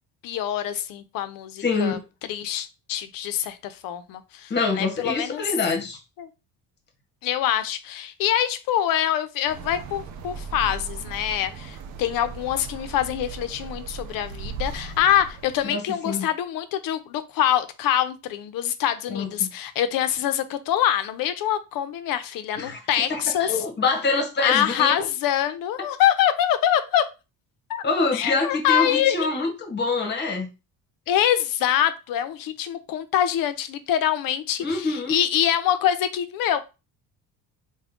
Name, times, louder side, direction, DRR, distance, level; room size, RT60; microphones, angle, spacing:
voice 1, 0.2-2.0 2.3-5.5 6.2-6.3 7.2-23.5 24.4-27.1 27.7-27.8 28.1-29.2 31.1-36.6, left 10 dB, 60° left, 0.6 m, -25 dB
voice 2, 1.6-2.0 4.5-6.0 15.6-16.3 19.1-19.5 22.6-22.8 23.1-25.1 27.8-30.5 34.6-35.2, left 3 dB, 25° left, 0.9 m, -25 dB
sound 1, 9.5-15.7, right 5 dB, 50° right, 0.5 m, -37 dB
3.6 x 2.2 x 3.5 m
cardioid pair, 145°, 39 cm